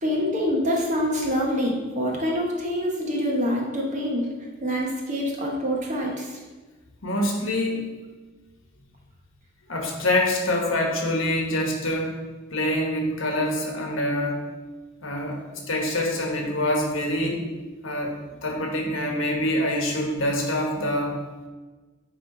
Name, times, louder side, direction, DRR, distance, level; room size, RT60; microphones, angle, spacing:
voice 1, 0.0-4.3 4.6-6.3, equal, 35° right, -1 dB, 1.2 m, -25 dB
voice 2, 7.0-7.9 9.7-12.1 12.5-14.4 15.0-17.4 17.8-18.1 18.4-21.2, left 1 dB, 75° left, 0 dB, 1.3 m, -25 dB
9.6 x 3.3 x 3.9 m, 1.3 s
head